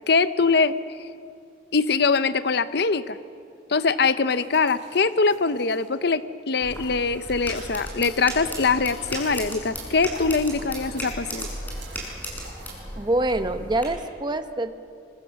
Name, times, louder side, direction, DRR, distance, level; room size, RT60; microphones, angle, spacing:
voice 1, 0.1-0.7 1.7-3.2 3.7-11.5, left 4 dB, 60° left, 13 dB, 0.7 m, -22 dB
sound 1, 4.2-8.2 8.7-13.4, right 4 dB, 85° right, 5.9 m, -48 dB
sound 2, 6.6-13.9, equal, 10° left, 6.0 m, -36 dB
voice 2, 13.0-14.7, right 2 dB, 25° right, 8 dB, 1.0 m, -25 dB
25.5 x 22.5 x 7.1 m, 2.4 s
head